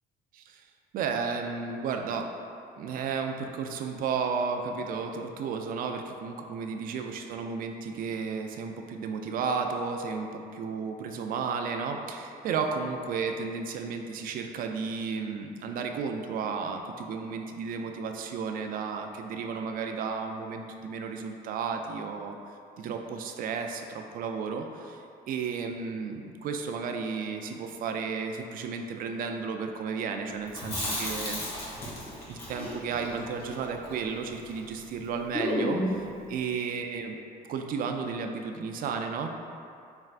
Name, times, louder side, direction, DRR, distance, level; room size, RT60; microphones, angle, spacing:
voice 1, 0.3-0.7 0.9-2.3 2.8-22.4 22.8-31.4 32.3-37.2 37.5-39.3, right 5 dB, 55° right, 4 dB, 0.4 m, -33 dB
Chewing mastication, 30.5-34.7 34.9-35.0 35.3-36.1, left 1 dB, 65° left, 1.3 m, -33 dB
4.5 x 3.2 x 2.5 m, 2.5 s
cardioid pair, 110°, 17 cm